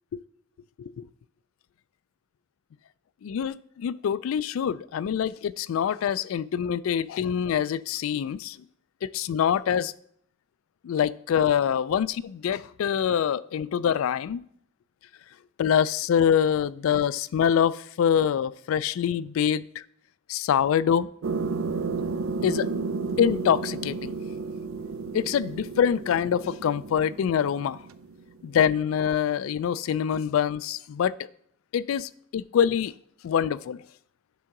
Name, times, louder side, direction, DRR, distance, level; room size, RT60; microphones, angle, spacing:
voice 1, 3.2-8.6 9.0-9.9 10.8-14.4 15.6-19.8 20.3-21.1 22.4-22.7 23.2-24.2 25.1-27.8 28.4-31.1 31.7-32.9 33.2-33.8, left 8 dB, 90° left, 19 dB, 0.3 m, -25 dB
sound 1, 21.2-28.4, right 4 dB, 90° right, 0.5 m, -32 dB
9.2 x 3.7 x 5.9 m, 0.68 s
head